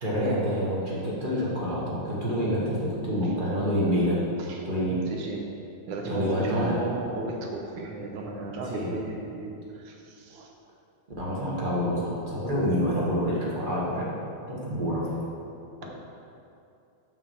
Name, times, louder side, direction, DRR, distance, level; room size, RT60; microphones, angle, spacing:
voice 1, 0.0-4.2 4.6-5.0 6.1-6.8 8.7-8.9 11.2-14.1 14.5-15.1, equal, 30° right, -6 dB, 1.3 m, -27 dB
voice 2, 4.4-5.4 5.9-10.5, right 2 dB, 75° right, 1 dB, 1.5 m, -34 dB
5.9 x 4.3 x 6.4 m, 2.6 s
omnidirectional pair, 2.3 m